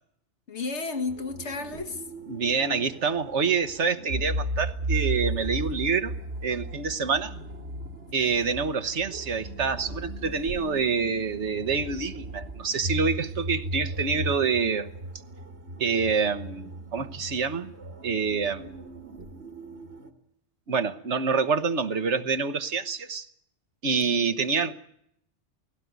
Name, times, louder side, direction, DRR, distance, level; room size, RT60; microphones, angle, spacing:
voice 1, 0.5-2.1 8.2-8.5 23.9-24.2, left 3 dB, 75° left, 8 dB, 2.0 m, -34 dB
sound 1, 1.1-20.1, right 1 dB, 65° right, 2.1 m, -36 dB
voice 2, 2.3-6.1 6.4-7.3 8.1-14.9 15.8-17.7 18.0-18.7 20.7-23.3 23.8-24.7, right 5 dB, 85° right, 9 dB, 1.5 m, -27 dB
19.5 x 16.5 x 9.4 m, 0.72 s
omnidirectional pair, 1.2 m